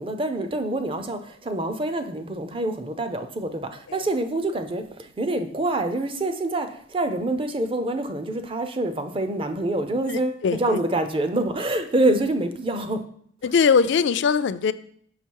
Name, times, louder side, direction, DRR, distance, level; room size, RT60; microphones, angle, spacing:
voice 1, 0.0-13.0, right 2 dB, 25° right, 0.5 m, -26 dB
voice 2, 10.1-10.8 13.4-14.7, left 6 dB, 60° left, 0.3 m, -21 dB
6.0 x 5.7 x 4.6 m
head